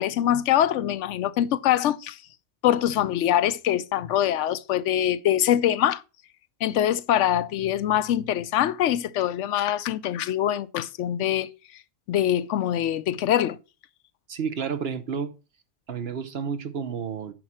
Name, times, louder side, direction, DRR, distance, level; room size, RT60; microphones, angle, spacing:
voice 1, 0.0-2.2 2.6-6.0 6.6-11.5 12.1-13.6, left 11 dB, 80° left, 0.9 m, -24 dB
voice 2, 14.3-15.3 15.9-17.3, right 6 dB, 60° right, 1.1 m, -30 dB
8.9 x 6.1 x 4.3 m
omnidirectional pair, 1.2 m